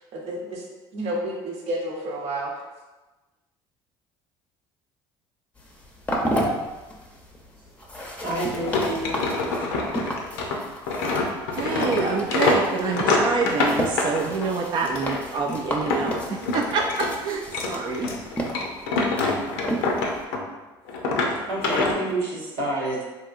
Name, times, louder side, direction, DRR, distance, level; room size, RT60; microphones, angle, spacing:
voice 1, 0.1-0.6 0.9-2.5, right 1 dB, 65° right, -1 dB, 0.8 m, -30 dB
sound 1, 5.6-20.2, equal, 10° left, 0.6 m, -33 dB
voice 2, 8.1-9.2 21.4-23.0, right 1 dB, 85° right, -6 dB, 1.0 m, -28 dB
sound 2, 8.6-14.5 14.9-17.1 17.4-20.6 20.9-21.9, left 3 dB, 85° left, 0.5 m, -26 dB
voice 3, 11.5-18.1, right 4 dB, 45° right, 1 dB, 0.3 m, -27 dB
3.7 x 2.7 x 2.5 m, 1.2 s
hypercardioid pair, 75°, 12 cm